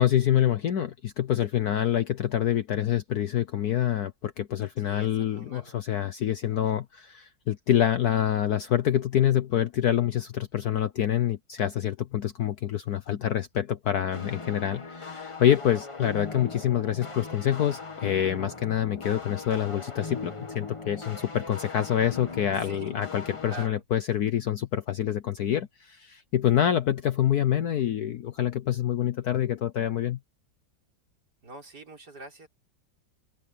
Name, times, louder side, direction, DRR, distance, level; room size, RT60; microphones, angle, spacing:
voice 1, 0.0-30.2, left 10 dB, 60° left, 1.2 m, -26 dB
voice 2, 4.8-5.8 22.6-22.9 23.5-23.8 31.4-32.5, right 2 dB, 55° right, 5.0 m, -44 dB
sound 1, 14.1-23.7, left 3 dB, 20° left, 1.1 m, -39 dB
open air
omnidirectional pair, 2.1 m